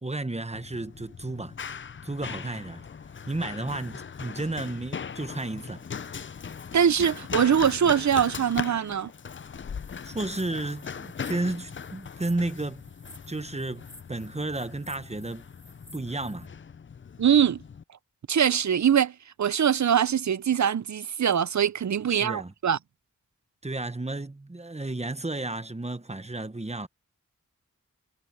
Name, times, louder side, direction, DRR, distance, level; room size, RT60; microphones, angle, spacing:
voice 1, 0.0-1.6 2.0-2.8 3.3-5.8 10.0-12.8 13.3-15.5 15.9-16.5 22.1-22.5 23.6-26.9, right 2 dB, 20° right, 1.1 m, -32 dB
Run, 0.5-17.8, left 6 dB, 40° left, 0.4 m, -39 dB
voice 2, 6.7-9.1 17.2-17.6 18.3-22.8, right 8 dB, 60° right, 0.6 m, -23 dB
sound 1, 9.8-16.5, left 1 dB, 10° left, 7.7 m, -53 dB
wide cardioid pair, 75°, 32 cm